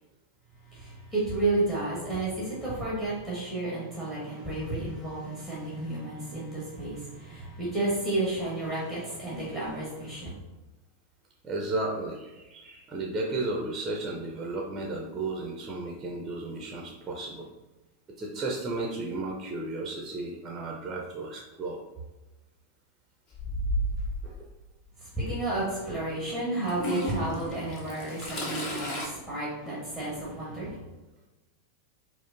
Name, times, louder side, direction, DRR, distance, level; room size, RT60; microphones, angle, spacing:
voice 1, 0.6-10.4 25.0-30.8, right 2 dB, 15° left, -8 dB, 1.1 m, -32 dB
voice 2, 11.4-17.5 18.2-21.8 24.2-24.5, right 2 dB, 20° right, 0 dB, 0.5 m, -34 dB
Toilet flush / Trickle dribble, 23.3-24.2 25.3-25.4 26.7-29.1, equal, 35° left, 0.8 m, -32 dB
4.8 x 2.0 x 2.5 m, 1.1 s
figure-of-eight pair, 90°, 0 cm